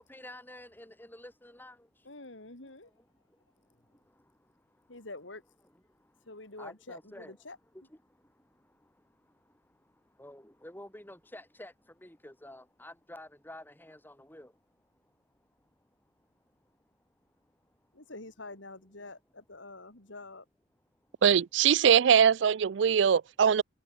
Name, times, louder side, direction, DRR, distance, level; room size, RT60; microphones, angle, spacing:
voice 1, 0.0-2.1 2.6-2.7 3.3-5.0 5.9-6.3 6.6-7.4 7.9-17.9 21.0-21.2, left 1 dB, 10° left, 5.2 m, -52 dB
voice 2, 2.0-2.9 3.7-3.8 4.9-5.4 6.3-7.6 17.9-20.5, left 2 dB, 90° left, 4.5 m, -46 dB
voice 3, 21.2-23.6, right 7 dB, 70° right, 0.4 m, -22 dB
head